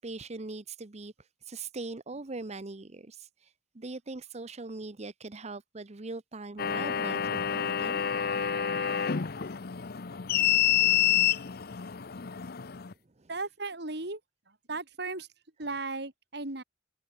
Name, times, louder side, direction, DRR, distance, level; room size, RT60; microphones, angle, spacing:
voice 1, 0.0-8.0 8.7-9.1 10.6-11.4 11.8-11.9 13.2-13.3, right 3 dB, 40° right, 0.9 m, -42 dB
sound 1, 6.6-12.9, left 9 dB, 60° left, 0.7 m, -28 dB
voice 2, 13.3-14.2 14.5-15.3 15.6-16.6, right 3 dB, 65° right, 3.9 m, -36 dB
head